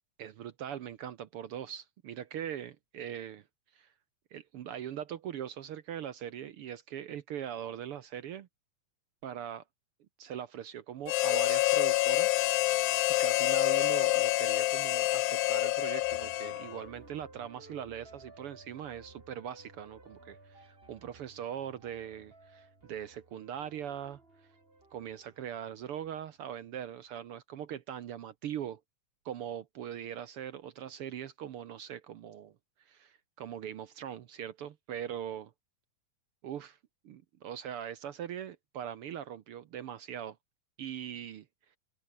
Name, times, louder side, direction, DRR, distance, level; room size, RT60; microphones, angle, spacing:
voice 1, 0.2-3.4 3.7-3.9 4.3-8.5 9.2-9.6 10.2-12.4 13.2-24.2 24.9-28.8 29.2-32.5 32.9-35.5 36.4-36.8 37.0-40.4 40.8-41.4, right 9 dB, 70° right, 1.4 m, -41 dB
Harmonica, 11.1-16.9, left 18 dB, 80° left, 2.0 m, -27 dB
sound 1, 16.0-26.2, right 2 dB, 15° right, 3.8 m, -56 dB
open air
omnidirectional pair, 3.6 m